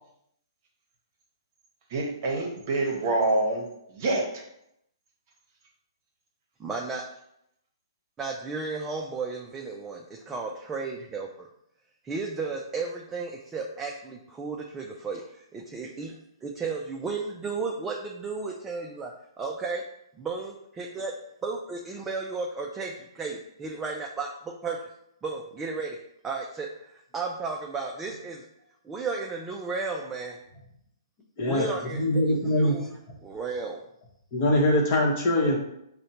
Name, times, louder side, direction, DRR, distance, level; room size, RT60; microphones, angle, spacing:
voice 1, 1.9-4.4, right 2 dB, 40° right, 0 dB, 0.9 m, -27 dB
voice 2, 6.6-7.0 8.2-11.5 12.0-16.1 16.4-19.1 19.4-19.8 20.2-21.1 21.4-24.8 25.2-26.0 26.2-28.4 28.8-30.4 31.4-32.9 33.2-33.8, right 4 dB, 10° right, 0 dB, 0.3 m, -34 dB
voice 3, 31.9-32.8 34.3-35.6, left 1 dB, 35° left, -1 dB, 0.9 m, -23 dB
4.9 x 2.1 x 2.8 m, 0.78 s
hypercardioid pair, 155°, 2 cm